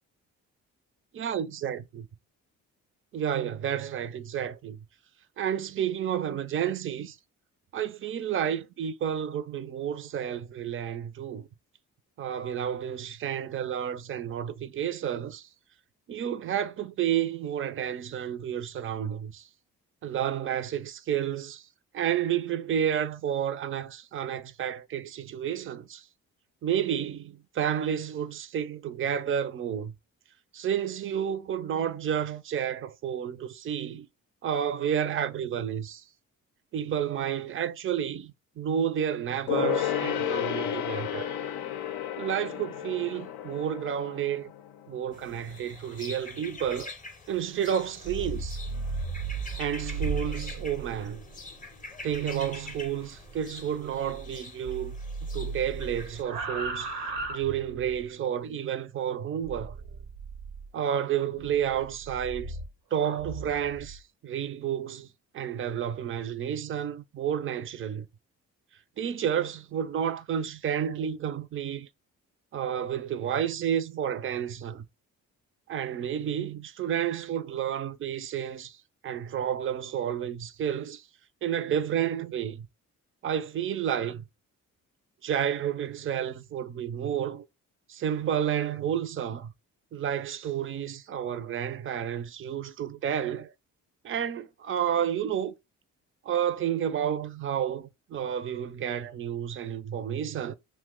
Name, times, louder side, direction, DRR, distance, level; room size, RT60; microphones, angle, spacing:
voice 1, 1.2-1.8 3.1-4.8 5.4-7.2 7.7-11.5 12.2-15.5 16.1-19.5 20.0-21.7 21.9-26.1 26.6-29.9 30.5-34.1 34.4-36.0 36.7-41.3 42.2-44.5 44.9-46.9 47.3-48.6 49.6-51.2 52.0-55.0 55.3-57.0 57.3-59.7 60.7-62.6 62.9-65.1 65.3-68.1 69.0-71.9 72.5-74.9 75.7-81.1 81.4-82.7 83.2-84.2 85.2-87.5 87.9-89.5 89.9-93.5 94.0-95.5 96.2-100.5, right 9 dB, 35° right, 0.4 m, -31 dB
Gong, 39.5-45.4 45.6-45.7, left 10 dB, 80° left, 0.5 m, -32 dB
sound 1, 45.1-56.2, left 3 dB, 20° left, 0.6 m, -45 dB
sound 2, 47.9-54.4 54.6-58.0 59.4-60.7 61.4-64.0, right 3 dB, 85° right, 0.8 m, -37 dB
2.8 x 2.1 x 3.5 m
supercardioid pair, 55°, 36 cm